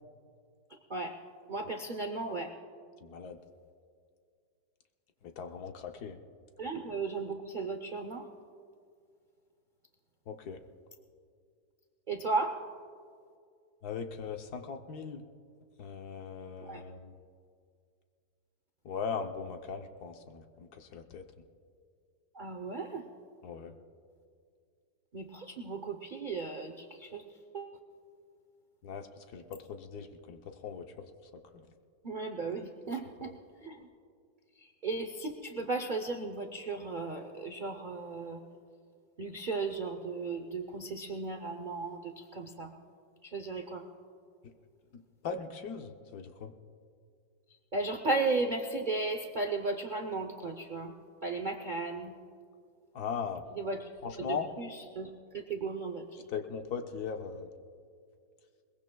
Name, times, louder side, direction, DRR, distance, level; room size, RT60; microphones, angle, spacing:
voice 1, 0.7-1.2 1.5-2.5 6.6-8.3 12.1-12.6 16.6-16.8 22.3-23.1 25.1-27.2 27.5-27.8 32.0-33.3 33.6-33.9 34.6-38.4 39.2-42.7 43.2-43.9 47.7-50.9 51.2-52.2 53.5-53.9 54.2-56.3, right 3 dB, 80° right, 5 dB, 0.4 m, -35 dB
voice 2, 3.0-3.4 5.2-6.2 10.3-10.6 13.8-15.2 15.8-17.1 18.8-21.2 23.4-23.7 28.8-29.1 29.3-30.9 44.9-46.5 52.9-53.4 54.0-54.5 56.3-57.5, left 6 dB, 65° left, 5 dB, 1.2 m, -39 dB
22.0 x 20.5 x 2.3 m, 2.2 s
omnidirectional pair, 2.0 m